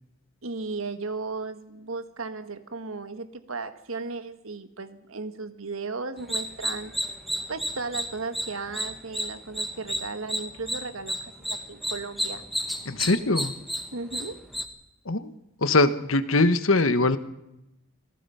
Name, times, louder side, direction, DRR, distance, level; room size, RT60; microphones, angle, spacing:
voice 1, 0.4-6.9 7.5-12.4 13.9-14.4, right 3 dB, 80° right, 10 dB, 1.6 m, -35 dB
sound 1, 6.2-14.6, equal, ahead, 1.5 m, -32 dB
voice 2, 12.8-13.5 15.0-15.3 15.6-17.2, left 2 dB, 80° left, 12 dB, 1.3 m, -22 dB
26.5 x 18.0 x 5.7 m, 0.87 s
head